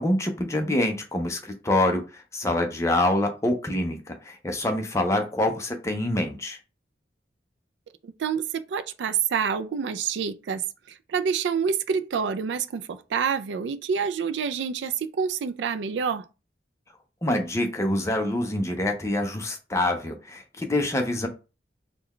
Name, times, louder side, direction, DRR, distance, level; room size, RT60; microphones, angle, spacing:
voice 1, 0.0-6.6 17.2-21.3, left 1 dB, 15° left, 0.5 m, -26 dB
voice 2, 8.0-10.6 11.1-16.2, right 6 dB, 90° right, 0.4 m, -27 dB
3.7 x 2.3 x 3.1 m
head